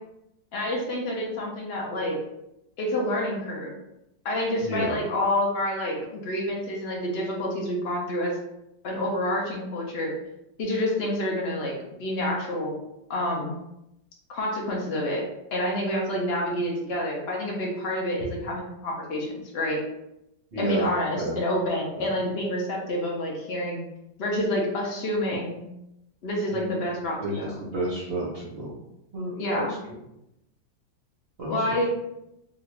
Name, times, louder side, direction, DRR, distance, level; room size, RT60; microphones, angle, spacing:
voice 1, 0.5-2.2 2.8-3.7 4.2-8.4 8.8-10.1 10.6-11.7 12.0-12.7 13.1-13.5 14.3-15.2 15.5-19.8 20.6-23.8 24.2-25.6 26.2-27.5 29.4-29.7 31.5-31.8, left 1 dB, 70° left, -2 dB, 0.6 m, -28 dB
voice 2, 4.6-5.0 20.5-20.9 21.2-21.4 21.9-22.1 26.5-28.8 29.1-30.0 31.4-31.8, right 1 dB, 50° right, -8 dB, 0.7 m, -32 dB
2.8 x 2.6 x 3.2 m, 0.85 s
omnidirectional pair, 2.0 m